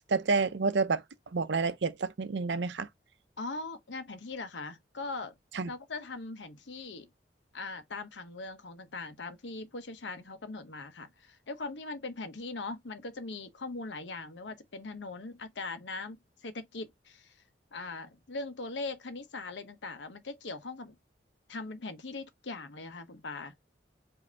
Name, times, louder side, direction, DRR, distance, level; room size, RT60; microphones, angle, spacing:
voice 1, 0.1-1.0 1.3-2.9 5.5-5.7, right 4 dB, 80° right, 0.6 m, -29 dB
voice 2, 3.4-5.3 5.7-7.1 7.5-17.4 17.7-21.0 21.5-23.5, left 3 dB, 80° left, 0.9 m, -40 dB
4.9 x 2.8 x 3.4 m
head